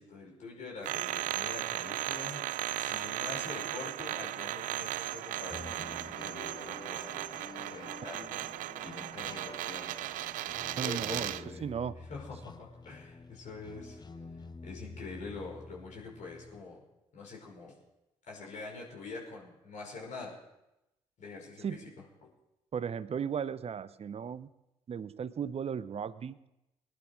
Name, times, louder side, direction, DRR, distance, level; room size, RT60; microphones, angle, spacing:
voice 1, 0.0-2.5 2.8-7.2 7.6-8.3 8.8-10.2 10.8-11.6 12.1-14.0 14.6-16.8 17.1-17.7 18.3-20.4 21.2-21.9, left 3 dB, 55° left, -2 dB, 5.5 m, -45 dB
sound 1, 0.8-11.5, right 15 dB, 60° right, 0.4 m, -36 dB
sound 2, 5.5-16.6, left 3 dB, 30° left, 1.1 m, -49 dB
voice 2, 10.8-11.3 11.6-12.0 21.6-21.8 22.7-24.5 24.9-26.4, right 7 dB, 45° right, 16 dB, 0.8 m, -36 dB
21.0 x 11.0 x 4.8 m, 0.92 s
figure-of-eight pair, 40°, 15 cm